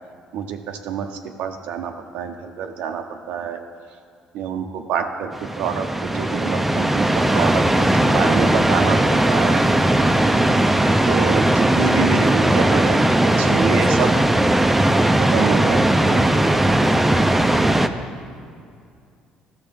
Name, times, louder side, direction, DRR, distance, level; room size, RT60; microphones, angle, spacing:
voice 1, 0.3-3.6 4.3-9.6 11.1-14.1 15.2-16.2, right 7 dB, 80° right, 4 dB, 0.6 m, -27 dB
sound 1, 5.3-17.9, right 1 dB, 10° right, 0.4 m, -18 dB
13.5 x 6.5 x 3.4 m, 2.3 s
cardioid pair, 115°, 2 cm